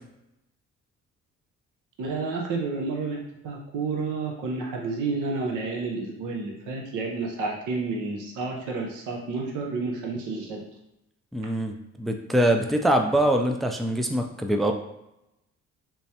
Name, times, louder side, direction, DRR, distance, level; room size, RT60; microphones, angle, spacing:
voice 1, 2.0-10.6, right 3 dB, 85° right, 0 dB, 0.7 m, -30 dB
voice 2, 11.3-14.7, right 1 dB, ahead, 4 dB, 0.3 m, -23 dB
3.4 x 3.1 x 2.8 m, 0.87 s
cardioid pair, 90°, 30 cm